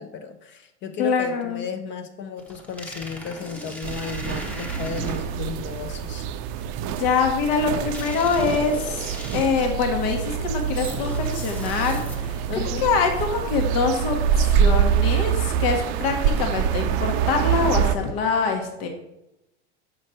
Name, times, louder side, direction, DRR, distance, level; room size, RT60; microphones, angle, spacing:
voice 1, 0.0-6.3 12.5-12.9, left 6 dB, 35° left, 8 dB, 0.6 m, -34 dB
voice 2, 1.0-1.7 6.9-18.9, left 5 dB, 60° left, 4 dB, 1.2 m, -24 dB
sound 1, 2.4-5.5 7.9-9.8 10.8-12.5, equal, 5° left, 0.8 m, -38 dB
sound 2, 3.8-18.0, right 8 dB, 50° right, 0.5 m, -25 dB
5.6 x 5.1 x 4.2 m, 0.87 s
hypercardioid pair, 115°, 33 cm